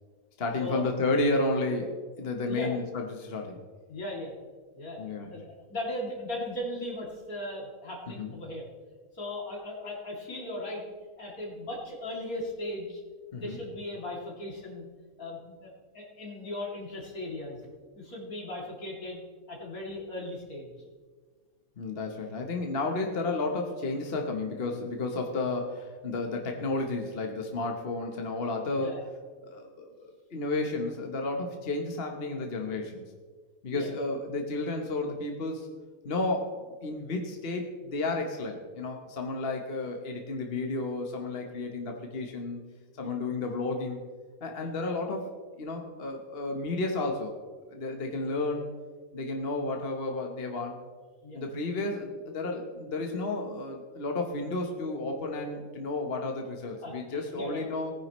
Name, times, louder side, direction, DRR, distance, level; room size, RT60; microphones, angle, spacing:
voice 1, 0.4-3.6 5.0-5.4 8.1-8.3 13.3-13.6 21.8-29.0 29.5-33.0 33.6-35.7 36.0-42.6 43.0-44.0 44.4-45.3 45.6-47.3 47.7-48.7 49.1-50.8 51.3-57.9, left 2 dB, 45° left, 2 dB, 1.2 m, -32 dB
voice 2, 3.9-4.3 4.8-5.0 5.3-8.7 9.1-10.8 11.2-13.0 13.3-14.8 15.2-17.6 18.0-19.2 19.5-20.7 28.7-29.0 33.7-34.0 43.0-43.1 44.6-44.7 51.2-51.4 56.8-57.6, left 1 dB, 70° left, -2 dB, 3.2 m, -37 dB
18.5 x 10.5 x 3.1 m, 1.5 s
omnidirectional pair, 1.5 m